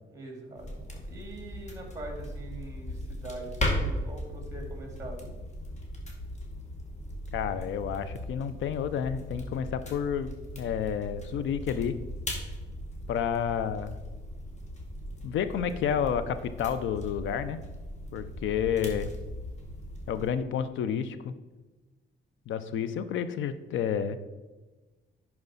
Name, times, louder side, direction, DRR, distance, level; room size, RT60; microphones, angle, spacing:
voice 1, 0.0-5.4, right 2 dB, 15° right, 1 dB, 2.4 m, -43 dB
sound 1, 0.6-20.3, left 1 dB, 35° left, 1.8 m, -38 dB
voice 2, 7.3-10.3 10.6-12.0 13.1-13.9 15.2-17.6 18.1-19.1 20.1-21.3 22.5-24.2, left 8 dB, 75° left, 13 dB, 0.6 m, -30 dB
10.5 x 4.6 x 4.0 m, 1.2 s
cardioid pair, 90°, 20 cm